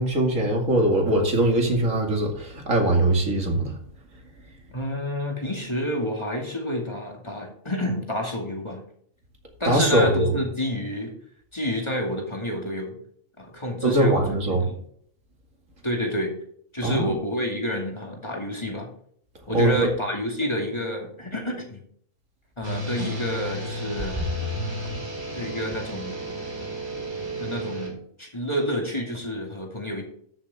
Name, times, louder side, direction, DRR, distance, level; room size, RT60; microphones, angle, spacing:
voice 1, 0.0-3.7 9.7-10.3 13.8-14.7 16.8-17.1 19.5-19.9, right 1 dB, 85° right, 1 dB, 2.7 m, -21 dB
voice 2, 4.7-8.8 9.6-11.1 11.5-13.0 13.4-14.8 15.8-16.3 16.7-18.9 19.5-21.8 22.6-24.2 25.3-26.5 27.4-30.0, left 1 dB, 20° left, 1 dB, 2.3 m, -29 dB
sound 1, 22.6-27.9, equal, 15° right, 4.2 m, -32 dB
13.0 x 7.0 x 3.6 m, 0.64 s
omnidirectional pair, 1.3 m